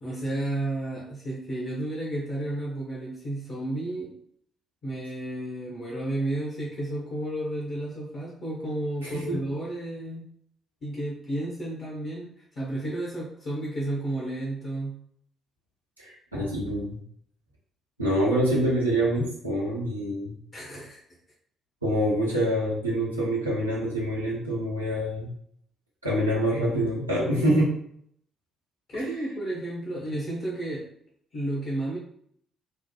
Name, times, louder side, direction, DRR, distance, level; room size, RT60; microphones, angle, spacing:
voice 1, 0.0-4.1 4.8-10.3 10.8-14.9 20.5-21.0 28.9-30.9 31.3-32.0, right 1 dB, 50° left, -5 dB, 1.0 m, -32 dB
voice 2, 9.0-9.4 16.0-17.0 18.0-20.3 21.8-25.3 26.0-27.7 28.9-29.1, equal, 85° right, -6 dB, 0.8 m, -26 dB
3.4 x 2.1 x 3.1 m, 0.66 s
figure-of-eight pair, 45°, 0 cm